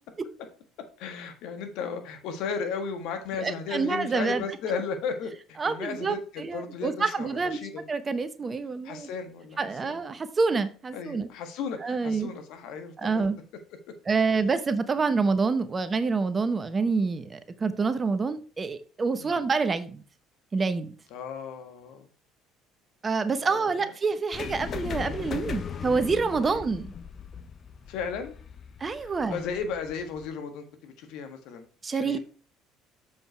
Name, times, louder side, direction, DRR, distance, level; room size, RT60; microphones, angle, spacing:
voice 1, 1.0-7.8 8.8-10.0 10.9-13.2 19.2-19.4 21.1-22.1 23.4-23.9 26.4-26.6 27.9-28.3 29.0-31.6 32.0-32.2, left 5 dB, 70° left, 1.5 m, -35 dB
voice 2, 3.4-4.4 5.6-7.6 7.9-9.1 9.6-11.3 11.8-12.3 13.0-13.4 14.1-20.0 20.5-20.9 23.0-26.9 28.8-29.5 31.8-32.2, right 4 dB, 30° right, 0.9 m, -27 dB
sound 1, 24.3-30.3, left 7 dB, 45° left, 0.9 m, -38 dB
7.3 x 5.4 x 4.5 m
hypercardioid pair, 65°, 0 cm